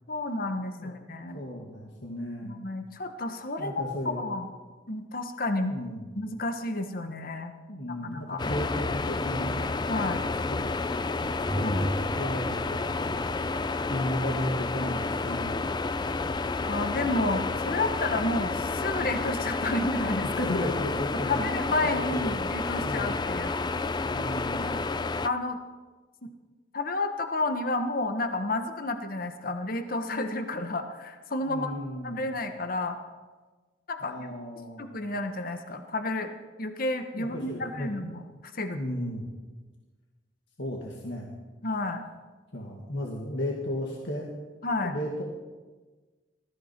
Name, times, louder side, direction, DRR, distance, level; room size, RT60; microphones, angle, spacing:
voice 1, 0.1-1.4 2.4-3.8 4.2-4.5 4.9-5.7 6.1-7.5 8.0-8.4 9.9-10.3 11.6-11.9 16.7-20.3 21.2-23.6 24.7-24.8 25.2-25.6 26.7-31.7 32.0-33.0 33.9-34.3 34.8-36.3 36.6-38.2 38.5-38.8 41.6-42.0 44.6-44.9, left 2 dB, 50° left, 7 dB, 1.2 m, -31 dB
voice 2, 1.3-2.6 3.6-4.2 5.7-6.1 7.7-9.6 10.5-10.8 11.2-11.9 12.2-13.3 13.9-16.1 20.4-22.4 22.8-23.2 24.1-24.9 31.4-32.2 34.0-34.8 37.2-37.9 38.7-39.3 40.6-41.4 42.5-44.3 44.8-45.2, left 1 dB, 65° left, -1 dB, 2.0 m, -34 dB
sound 1, 8.4-25.3, left 3 dB, 20° left, 0.4 m, -30 dB
Bowed string instrument, 11.5-13.9, equal, 30° right, 2.6 m, -35 dB
20.5 x 14.5 x 4.5 m, 1.3 s
head